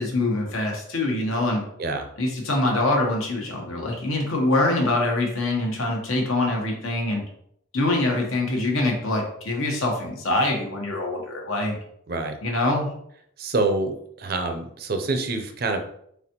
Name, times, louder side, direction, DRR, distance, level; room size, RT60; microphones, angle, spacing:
voice 1, 0.0-1.6 2.2-7.2 7.7-11.8 12.4-12.9, left 2 dB, 80° left, 1 dB, 1.0 m, -24 dB
voice 2, 13.4-15.8, right 3 dB, 45° right, 6 dB, 0.5 m, -26 dB
4.1 x 3.4 x 2.9 m, 0.70 s
head